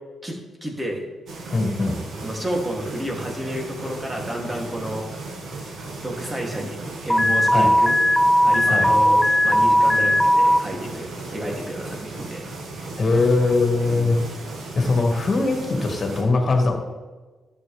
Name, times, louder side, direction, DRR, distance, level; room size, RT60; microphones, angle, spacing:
voice 1, 0.2-1.1 2.2-5.1 6.0-8.0 8.4-12.4 13.9-14.0, equal, 25° right, -1 dB, 3.0 m, -30 dB
sound 1, 1.3-16.2, right 3 dB, 70° right, 2.0 m, -36 dB
voice 2, 1.5-2.0 7.5-7.7 8.7-8.9 13.0-14.2 14.7-16.7, left 3 dB, 45° left, 3 dB, 2.1 m, -21 dB
Alarm, 7.1-10.6, equal, 15° left, 0.6 m, -17 dB
11.5 x 8.2 x 3.6 m, 1.3 s
hypercardioid pair, 45°, 0 cm